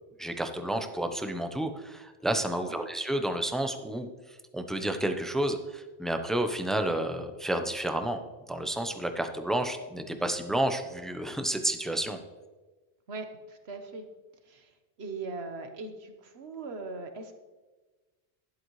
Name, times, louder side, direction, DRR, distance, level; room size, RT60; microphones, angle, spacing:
voice 1, 0.2-8.2 8.5-12.2, right 1 dB, ahead, 6 dB, 0.6 m, -30 dB
voice 2, 13.1-14.1 14.4-17.3, right 3 dB, 70° right, 6 dB, 1.4 m, -40 dB
12.0 x 11.0 x 3.2 m, 1.2 s
omnidirectional pair, 1.1 m